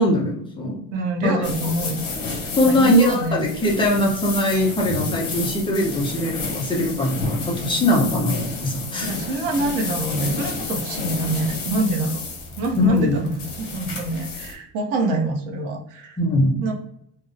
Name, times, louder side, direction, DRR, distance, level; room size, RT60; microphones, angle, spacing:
voice 1, 0.0-0.8 1.2-1.3 2.6-9.1 12.8-13.2 16.2-16.7, left 1 dB, 15° left, -2 dB, 0.5 m, -21 dB
voice 2, 0.9-2.1 2.4-3.5 4.9-5.0 9.0-12.2 12.6-16.2 16.6-16.7, right 2 dB, 80° right, 3 dB, 0.7 m, -25 dB
sound 1, 1.4-14.5, left 4 dB, 65° left, 0.9 m, -31 dB
2.6 x 2.0 x 2.4 m, 0.70 s
cardioid pair, 155°, 31 cm